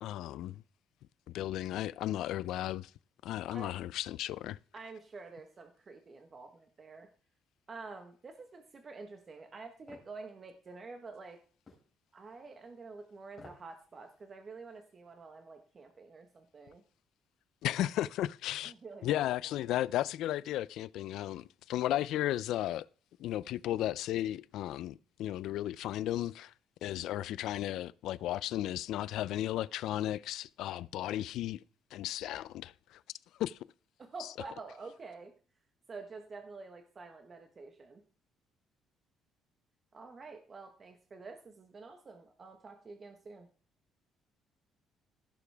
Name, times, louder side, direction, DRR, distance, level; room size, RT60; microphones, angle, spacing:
voice 1, 0.0-0.6 1.3-2.9 3.2-4.6 17.6-18.7 19.0-22.8 23.2-26.5 26.8-31.6 31.9-33.0 33.4-33.6 34.2-34.3, left 13 dB, 75° left, 0.4 m, -34 dB
voice 2, 4.7-7.1 7.7-11.4 12.1-16.8 18.6-19.2 19.4-19.5 34.0-35.3 35.9-38.0 39.9-43.5, right 4 dB, 30° right, 1.1 m, -48 dB
sound 1, 9.9-10.1 11.7-11.9 13.3-13.7 14.1-14.2, left 3 dB, 25° left, 4.3 m, -53 dB
16.0 x 7.0 x 3.4 m
cardioid pair, 150°, 0 cm